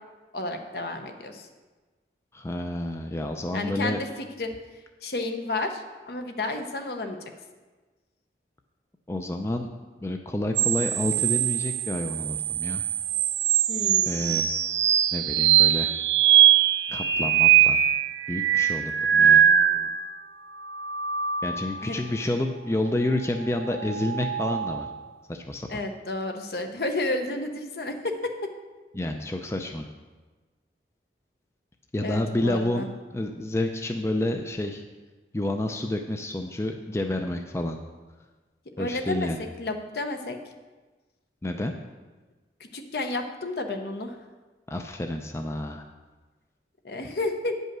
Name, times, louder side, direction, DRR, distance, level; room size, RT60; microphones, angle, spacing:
voice 1, 0.3-1.5 3.5-4.0 4.4-4.5 5.0-7.2 13.7-14.4 19.2-19.9 21.8-22.0 25.7-28.5 32.0-32.9 38.8-39.3 39.6-40.4 42.7-44.2 46.8-47.6, left 2 dB, 65° left, 6 dB, 0.8 m, -31 dB
voice 2, 2.3-4.0 9.1-9.7 10.0-12.8 14.1-14.5 15.1-15.9 16.9-17.8 18.3-19.5 21.4-24.9 25.3-25.8 28.9-29.9 31.9-32.9 33.1-34.8 35.3-37.8 38.8-39.4 41.4-41.7 44.7-45.8, left 1 dB, 15° left, 4 dB, 0.4 m, -29 dB
sound 1, 10.6-20.1 20.6-21.9 23.7-24.9, right 10 dB, 75° right, 0.4 m, -22 dB
9.0 x 5.4 x 6.1 m, 1.3 s
head